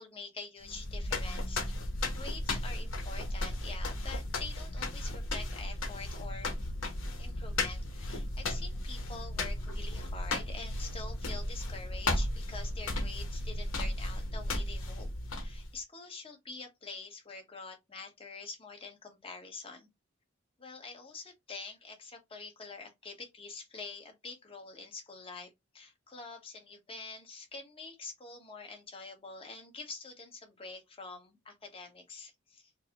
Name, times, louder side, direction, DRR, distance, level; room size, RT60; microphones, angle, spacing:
voice 1, 0.0-1.6 2.1-6.6 7.2-15.1 15.4-19.9 20.6-32.7, left 4 dB, 30° left, 1.0 m, -46 dB
sound 1, 0.6-15.8, left 1 dB, 80° left, 0.9 m, -35 dB
4.5 x 2.1 x 2.8 m
head